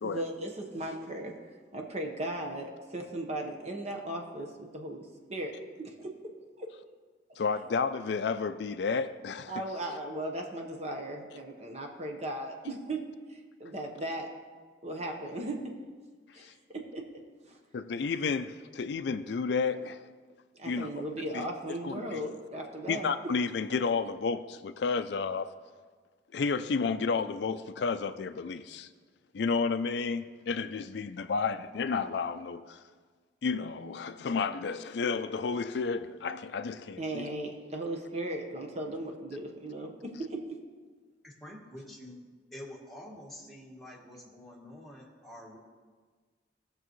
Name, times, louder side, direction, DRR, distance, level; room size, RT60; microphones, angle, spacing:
voice 1, 0.0-1.3 1.7-5.0 5.3-6.1 6.6-6.7 9.5-13.0 13.3-14.3 14.8-15.6 16.3-17.0 17.4-17.6 20.5-23.1 37.0-39.9 40.3-40.4, right 1 dB, 35° right, 2 dB, 1.1 m, -37 dB
voice 2, 7.4-9.5 16.4-16.5 17.7-20.0 20.6-20.9 21.3-21.5 21.8-22.2 22.9-25.5 26.3-28.9 29.3-32.8 33.4-37.3, left 5 dB, 65° left, 11 dB, 0.4 m, -31 dB
voice 3, 41.2-42.2 42.5-45.6, left 1 dB, ahead, -4 dB, 1.8 m, -47 dB
18.0 x 6.7 x 3.1 m, 1.5 s
head